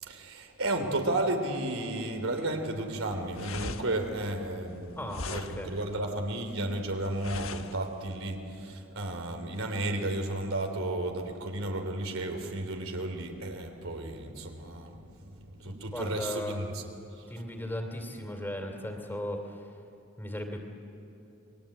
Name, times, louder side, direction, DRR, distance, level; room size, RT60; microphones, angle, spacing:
voice 1, 0.0-5.0 5.3-15.3 15.6-16.8, right 2 dB, 90° right, 5 dB, 3.3 m, -33 dB
sound 1, 2.8-8.3, left 4 dB, 85° left, 1.2 m, -42 dB
voice 2, 5.0-5.8 15.7-16.6 17.3-19.7 20.2-20.6, left 1 dB, 10° left, 3 dB, 2.7 m, -37 dB
29.0 x 21.5 x 8.8 m, 2.8 s
head